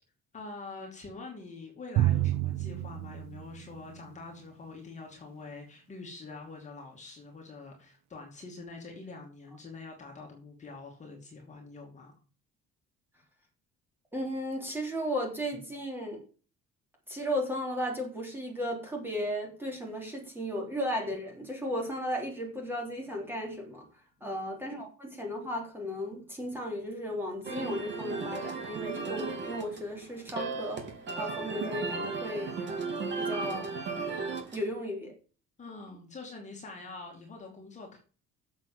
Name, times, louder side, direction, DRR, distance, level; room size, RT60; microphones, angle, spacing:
voice 1, 0.3-12.1 15.5-15.6 24.2-24.5 35.6-38.0, left 3 dB, 25° left, 0 dB, 2.5 m, -45 dB
Drum, 2.0-4.3, right 15 dB, 65° right, 0.5 m, -30 dB
voice 2, 14.1-16.2 17.1-23.8 24.2-30.8 31.2-32.5 33.2-33.8 34.5-35.1, equal, 5° right, 0 dB, 3.4 m, -35 dB
sound 1, 27.4-34.7, right 4 dB, 35° right, 2.7 m, -35 dB
7.5 x 7.4 x 7.6 m, 0.38 s
cardioid pair, 180°, 29 cm